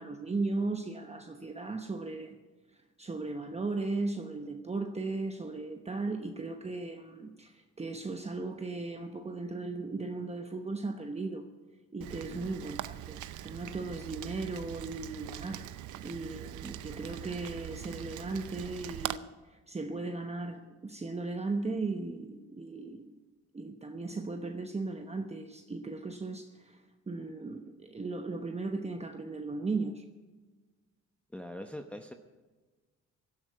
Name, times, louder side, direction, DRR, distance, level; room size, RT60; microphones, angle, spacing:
voice 1, 0.0-2.4 3.0-11.5 11.9-15.7 16.0-23.2 23.5-30.1, right 3 dB, 20° right, 5 dB, 1.0 m, -37 dB
Rain, 12.0-19.2, right 14 dB, 75° right, 0.7 m, -42 dB
voice 2, 31.3-32.1, left 1 dB, 5° left, 4 dB, 0.9 m, -43 dB
17.5 x 12.0 x 4.7 m, 1.3 s
cardioid pair, 90°, 30 cm